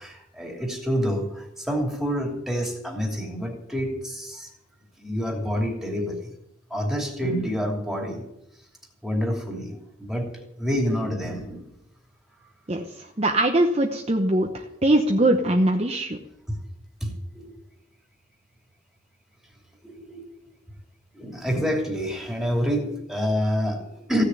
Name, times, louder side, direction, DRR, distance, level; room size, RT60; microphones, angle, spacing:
voice 1, 0.0-4.5 5.0-6.3 6.7-8.2 9.0-11.7 12.4-12.5 16.5-16.6 17.0-17.5 19.8-20.3 21.1-24.2, equal, ahead, 1 dB, 2.8 m, -28 dB
voice 2, 13.2-16.2, right 1 dB, 30° right, 3 dB, 0.9 m, -21 dB
15.5 x 6.7 x 9.6 m, 0.82 s
head